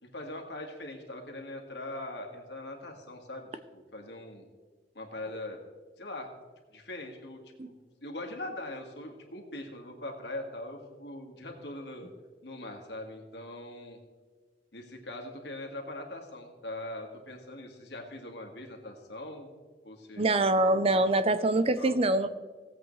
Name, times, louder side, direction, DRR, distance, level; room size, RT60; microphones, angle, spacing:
voice 1, 0.0-3.5 3.7-4.5 5.0-5.6 6.0-6.3 6.7-7.8 8.0-12.1 12.4-14.0 14.7-19.5 19.8-20.3 21.8-22.0, left 1 dB, 70° left, 2 dB, 1.9 m, -41 dB
voice 2, 20.2-22.3, right 2 dB, 35° right, 11 dB, 0.6 m, -24 dB
18.0 x 8.0 x 3.2 m, 1.4 s
head